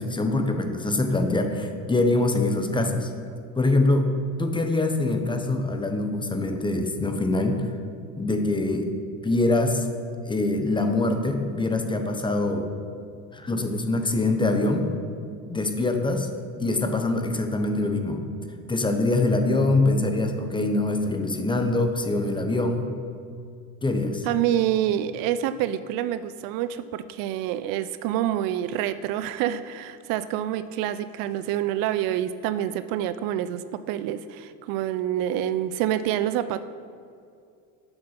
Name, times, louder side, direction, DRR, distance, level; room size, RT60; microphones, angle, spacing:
voice 1, 0.0-3.1 3.6-7.7 8.2-8.9 9.2-9.8 10.3-12.7 13.3-14.9 15.5-16.3 16.6-18.2 18.7-22.9 23.8-24.3, left 2 dB, 15° left, 5 dB, 0.7 m, -24 dB
voice 2, 24.2-36.6, right 11 dB, 65° right, 13 dB, 0.5 m, -27 dB
7.8 x 6.0 x 5.6 m, 2.4 s
supercardioid pair, 110°, 38 cm